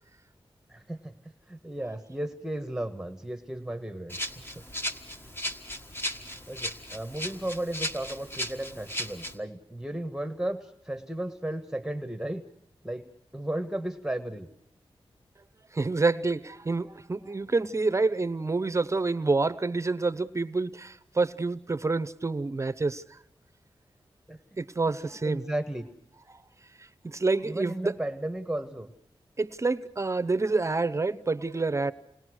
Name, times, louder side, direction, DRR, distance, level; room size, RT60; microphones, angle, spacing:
voice 1, 0.7-4.2 4.5-4.6 6.5-12.4 12.8-13.1 13.3-14.5 24.3-24.4 25.2-25.9 27.4-28.9, right 1 dB, 5° right, 7 dB, 1.3 m, -34 dB
Rattle (instrument), 4.1-9.3, left 1 dB, 25° left, 1.8 m, -36 dB
voice 2, 15.7-23.2 24.6-25.4 27.0-28.0 29.4-31.9, right 3 dB, 30° right, 15 dB, 0.8 m, -28 dB
29.0 x 20.0 x 6.4 m, 0.76 s
wide cardioid pair, 115°, 10 cm